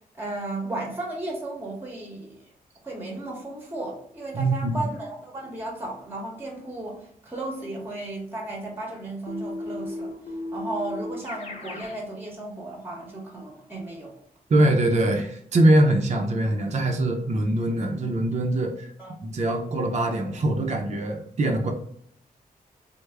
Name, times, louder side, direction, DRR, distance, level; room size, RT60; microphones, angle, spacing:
voice 1, 0.1-2.4 2.8-10.1 10.5-14.1 19.0-19.1, right 2 dB, 15° right, 0 dB, 0.8 m, -34 dB
voice 2, 4.3-4.9 14.5-18.9 19.2-21.7, right 1 dB, 45° right, 3 dB, 0.5 m, -23 dB
Keyboard (musical), 9.3-12.0, left 1 dB, 45° left, 0.9 m, -35 dB
3.3 x 2.0 x 3.3 m, 0.67 s
cardioid pair, 80°, 16 cm